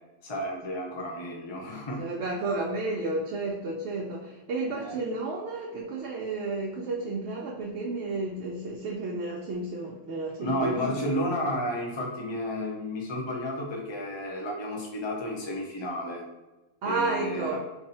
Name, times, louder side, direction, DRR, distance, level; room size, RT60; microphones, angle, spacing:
voice 1, 0.2-2.0 4.8-5.0 10.4-16.2 16.8-17.6, equal, 30° left, -1 dB, 0.6 m, -32 dB
voice 2, 2.0-10.8 16.8-17.6, right 3 dB, 65° right, -3 dB, 0.8 m, -32 dB
2.7 x 2.6 x 4.1 m, 1.1 s
omnidirectional pair, 1.3 m